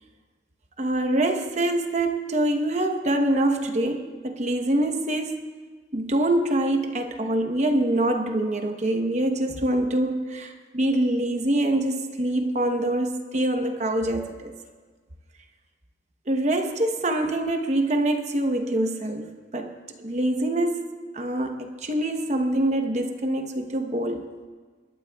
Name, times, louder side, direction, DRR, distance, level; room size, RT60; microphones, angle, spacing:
voice 1, 0.8-5.4 5.9-14.5 16.3-19.7 20.0-24.5, right 1 dB, 40° right, 4 dB, 0.9 m, -25 dB
23.5 x 12.0 x 2.3 m, 1.5 s
head